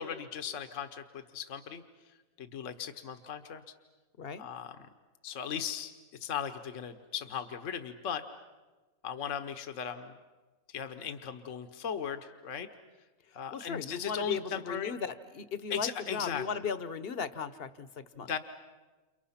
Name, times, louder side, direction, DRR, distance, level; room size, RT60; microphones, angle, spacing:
voice 1, 0.0-1.8 2.4-3.6 4.4-4.8 5.2-5.9 6.2-8.2 9.0-10.1 10.7-12.7 13.3-14.9 15.7-16.4 18.2-18.4, left 8 dB, 65° left, 8 dB, 1.4 m, -37 dB
voice 2, 13.3-18.3, left 6 dB, 45° left, 13 dB, 1.2 m, -37 dB
29.5 x 29.5 x 5.8 m, 1.2 s
omnidirectional pair, 1.4 m